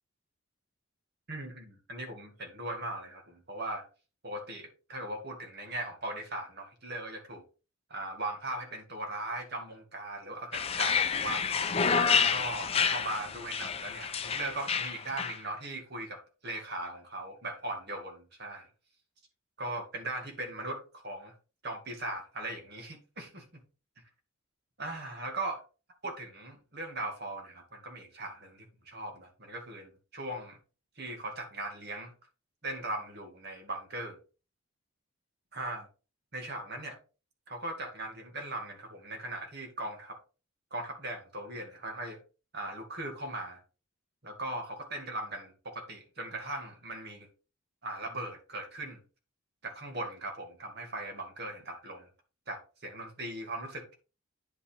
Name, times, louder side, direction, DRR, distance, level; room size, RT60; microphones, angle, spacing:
voice 1, 1.3-3.9 4.2-7.4 7.9-11.4 12.0-18.7 19.6-21.3 21.6-23.4 24.8-25.6 26.0-30.6 31.0-32.1 32.6-34.2 35.5-35.9 36.3-37.0 37.5-40.2 40.7-42.2 42.5-43.6 44.2-47.3 47.8-49.0 49.6-52.1 52.5-54.0, right 2 dB, 50° right, 2.2 m, -39 dB
sound 1, 10.5-15.4, left 6 dB, 30° left, 0.6 m, -29 dB
9.7 x 5.5 x 3.4 m
head